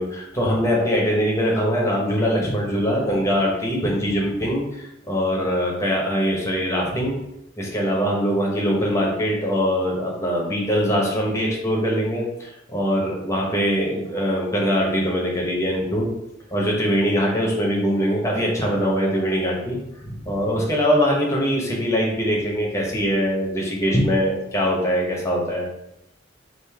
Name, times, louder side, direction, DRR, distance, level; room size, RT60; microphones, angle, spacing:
voice 1, 0.0-7.2 7.6-16.1 16.5-25.7, equal, 15° left, -2 dB, 1.0 m, -22 dB
5.1 x 2.6 x 3.5 m, 0.86 s
head